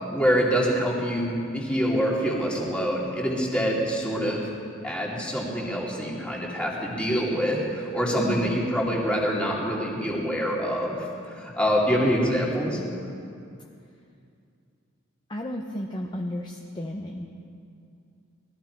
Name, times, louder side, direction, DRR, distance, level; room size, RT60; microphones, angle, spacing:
voice 1, 0.0-4.5 4.8-12.8, equal, 5° left, -4 dB, 2.7 m, -25 dB
voice 2, 8.2-8.6 15.3-17.3, equal, 20° left, 1 dB, 0.8 m, -33 dB
20.0 x 14.5 x 4.6 m, 2.5 s
head